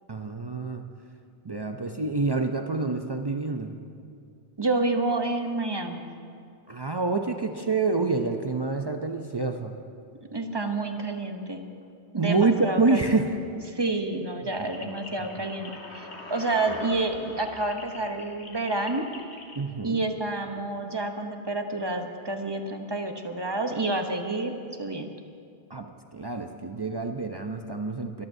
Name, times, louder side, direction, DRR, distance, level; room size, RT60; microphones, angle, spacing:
voice 1, 0.1-0.9 1.4-3.7 6.7-9.7 12.2-13.3 14.6-14.9 19.5-20.0 25.7-28.2, right 3 dB, 45° right, 5 dB, 0.3 m, -27 dB
voice 2, 4.6-6.1 10.3-11.7 12.1-13.2 13.7-19.1 19.8-24.5 24.8-25.1, right 2 dB, 25° right, 5 dB, 0.7 m, -29 dB
sound 1, 14.5-19.6, left 2 dB, 80° left, 1.7 m, -43 dB
22.0 x 14.0 x 2.7 m, 2.4 s
omnidirectional pair, 1.1 m